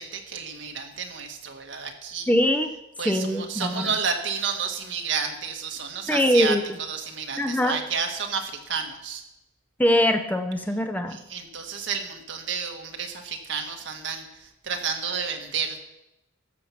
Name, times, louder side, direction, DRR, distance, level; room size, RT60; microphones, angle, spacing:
voice 1, 0.0-2.3 3.0-9.2 11.1-15.9, right 6 dB, 60° right, 3 dB, 1.6 m, -31 dB
voice 2, 2.3-2.7 3.0-3.9 6.1-6.6 7.4-7.8 9.8-11.2, left 1 dB, 10° left, 6 dB, 0.7 m, -22 dB
14.0 x 7.0 x 5.9 m, 0.90 s
head